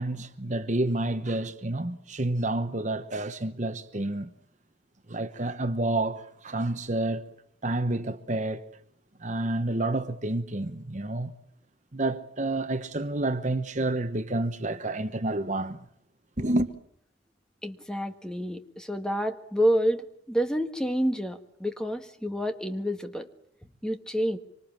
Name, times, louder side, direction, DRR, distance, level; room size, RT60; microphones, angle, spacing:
voice 1, 0.0-4.3 5.1-7.2 7.6-8.6 9.2-11.3 11.9-15.9 16.4-16.7, right 2 dB, 40° right, 1.0 m, -29 dB
voice 2, 17.6-20.0 20.3-23.3 23.8-24.4, equal, 5° left, 1.6 m, -28 dB
26.0 x 25.0 x 7.4 m
head